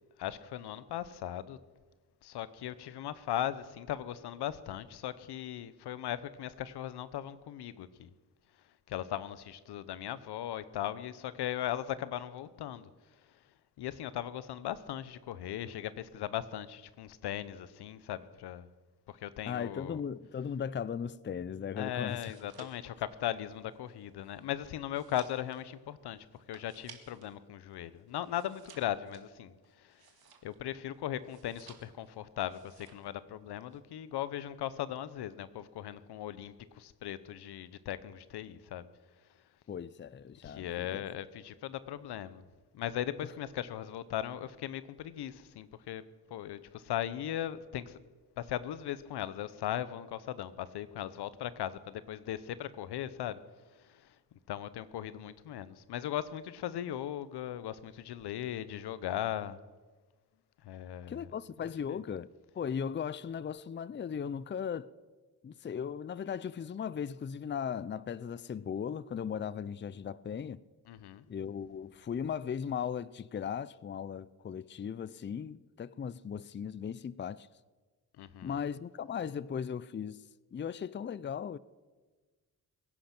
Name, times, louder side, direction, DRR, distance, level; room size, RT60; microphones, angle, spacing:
voice 1, 0.2-1.6 2.2-8.1 8.9-12.9 13.8-18.7 19.1-20.0 21.8-30.0 30.4-38.9 40.4-42.4 42.7-46.0 46.3-48.0 48.4-53.4 53.8-54.1 54.5-59.6 60.6-61.2 61.9-62.0 70.9-71.2 78.2-78.6, left 11 dB, 85° left, 0.8 m, -38 dB
voice 2, 19.5-22.3 39.7-41.0 61.1-64.9 65.4-70.6 71.3-77.5 78.4-80.2 80.5-81.6, left 7 dB, 30° left, 0.5 m, -37 dB
sound 1, 21.9-27.4 27.7-30.7 31.2-32.1 32.4-33.1 33.4-33.8, right 7 dB, 70° right, 2.1 m, -58 dB
22.5 x 10.5 x 6.0 m
cardioid pair, 70°, 38 cm